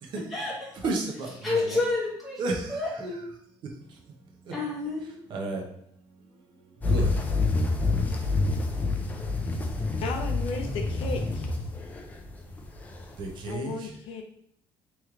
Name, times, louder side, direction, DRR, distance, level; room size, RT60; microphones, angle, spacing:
voice 1, 0.7-1.8 2.4-3.2 3.8-4.0 4.4-4.5 5.3-5.6 6.2-7.6 13.2-13.9, right 3 dB, 50° right, 1 dB, 0.9 m, -34 dB
voice 2, 1.4-2.4 2.7-3.2 4.5-5.1, left 3 dB, ahead, -7 dB, 0.9 m, -29 dB
sound 1, 6.8-13.5, left 3 dB, 15° left, 0.4 m, -27 dB
voice 3, 10.0-11.5 13.5-14.2, left 4 dB, 65° left, 3 dB, 0.5 m, -34 dB
3.2 x 3.1 x 3.7 m, 0.69 s
cardioid pair, 155°, 10 cm